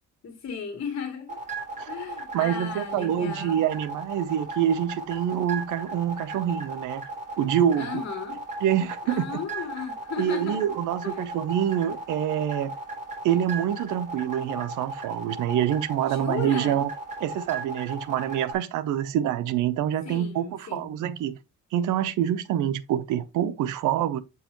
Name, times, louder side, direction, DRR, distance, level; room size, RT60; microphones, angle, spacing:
voice 1, 0.2-1.4 1.9-3.6 7.8-8.4 9.0-10.6 11.0-11.3 16.0-16.8 20.0-20.9, left 6 dB, 50° left, 1.8 m, -35 dB
sound 1, 1.3-18.5, right 2 dB, 25° right, 3.4 m, -36 dB
voice 2, 2.3-7.0 7.4-8.0 8.6-9.2 10.2-12.7 13.2-16.9 17.2-21.4 21.7-24.2, right 10 dB, 85° right, 0.7 m, -26 dB
7.9 x 4.7 x 3.0 m
cardioid pair, 90°, 30 cm